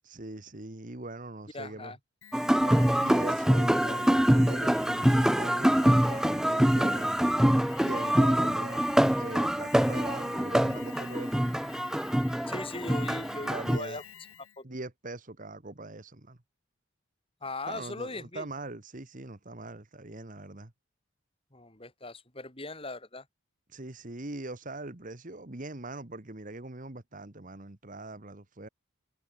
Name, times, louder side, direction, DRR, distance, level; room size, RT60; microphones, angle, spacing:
voice 1, 0.0-1.9 2.6-7.4 7.8-11.6 13.4-14.0 14.6-16.4 17.6-20.7 23.7-28.7, right 2 dB, 40° right, 1.5 m, -42 dB
voice 2, 1.5-2.0 12.5-14.0 14.6-14.7 17.4-18.5 21.5-23.3, left 2 dB, 25° left, 3.6 m, -39 dB
Alarm, 2.2-14.6, left 9 dB, 80° left, 2.7 m, -50 dB
sound 1, 2.3-13.8, equal, 5° right, 0.3 m, -25 dB
head